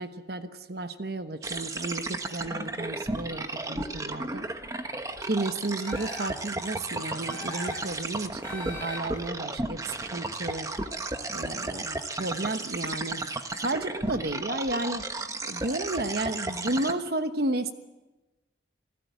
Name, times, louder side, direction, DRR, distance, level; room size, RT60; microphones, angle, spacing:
voice 1, 0.0-4.4 5.3-10.7 11.3-13.2 13.6-15.1 15.4-17.7, right 2 dB, 60° right, 9 dB, 1.1 m, -32 dB
sound 1, 1.4-16.9, right 2 dB, 20° right, 1.2 m, -34 dB
sound 2, 5.8-6.5 7.3-8.0 8.4-9.3, left 1 dB, 10° left, 5.8 m, -41 dB
28.0 x 16.0 x 9.4 m, 1.1 s
head